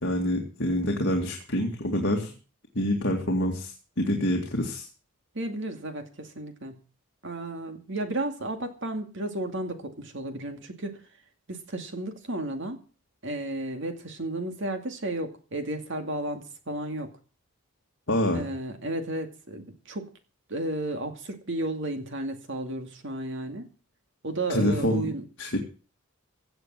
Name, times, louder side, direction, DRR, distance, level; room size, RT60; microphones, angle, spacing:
voice 1, 0.0-2.3 2.7-4.9 18.1-18.4 24.5-25.1 25.4-25.6, left 1 dB, 55° left, 1 dB, 2.3 m, -26 dB
voice 2, 5.3-6.8 7.2-11.0 11.5-12.8 13.2-17.1 18.3-20.1 20.5-23.7 24.2-25.2, right 1 dB, 55° right, 6 dB, 2.3 m, -33 dB
16.5 x 7.0 x 7.6 m, 0.37 s
head